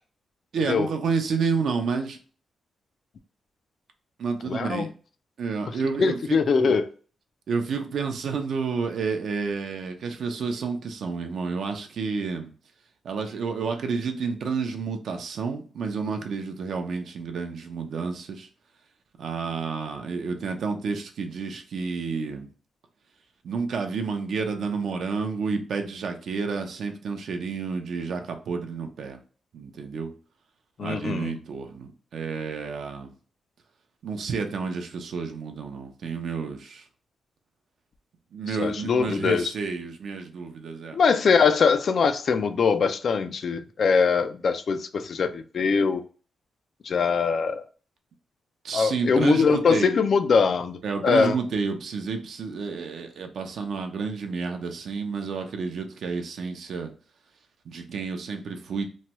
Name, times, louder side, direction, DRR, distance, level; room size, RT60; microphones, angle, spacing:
voice 1, 0.5-2.2 4.2-4.9 5.4-6.8 7.5-12.5 13.0-18.5 19.2-22.5 23.4-29.2 29.5-30.1 30.8-33.1 34.0-36.8 38.3-41.0 48.6-50.0 50.8-56.9 57.7-58.9, right 5 dB, 65° right, 0.5 m, -30 dB
voice 2, 4.5-4.9 6.0-6.9 30.8-31.3 38.6-39.5 40.9-46.0 46.8-47.6 48.7-51.3, left 5 dB, 50° left, 0.3 m, -22 dB
3.1 x 2.2 x 2.8 m
wide cardioid pair, 135°, 0 cm